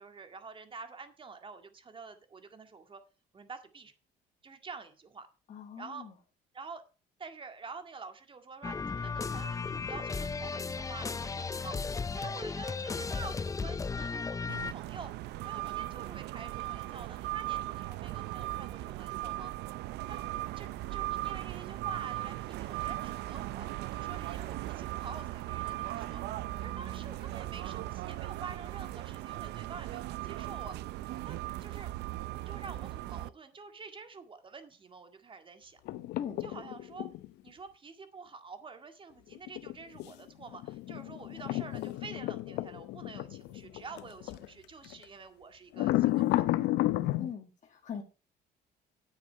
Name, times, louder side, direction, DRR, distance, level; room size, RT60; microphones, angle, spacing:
voice 1, 0.0-3.0 3.3-3.9 4.4-5.3 5.8-6.1 6.5-6.8 7.2-15.1 15.4-19.5 20.1-20.2 20.6-26.2 26.6-30.8 31.2-35.8 36.4-37.1 37.4-46.7, right 4 dB, 30° right, 8 dB, 2.0 m, -48 dB
voice 2, 5.5-6.1 36.1-36.7 47.1-48.0, left 7 dB, 45° left, 1 dB, 2.0 m, -42 dB
sound 1, 8.6-14.7, left 4 dB, 20° left, 0.5 m, -35 dB
sound 2, 14.5-33.3, right 16 dB, 80° right, 0.6 m, -38 dB
sound 3, 35.9-37.3 39.3-44.5 44.8-45.0 45.7-47.3, left 16 dB, 85° left, 0.7 m, -32 dB
9.2 x 9.2 x 4.7 m, 0.33 s
cardioid pair, 110°, 17 cm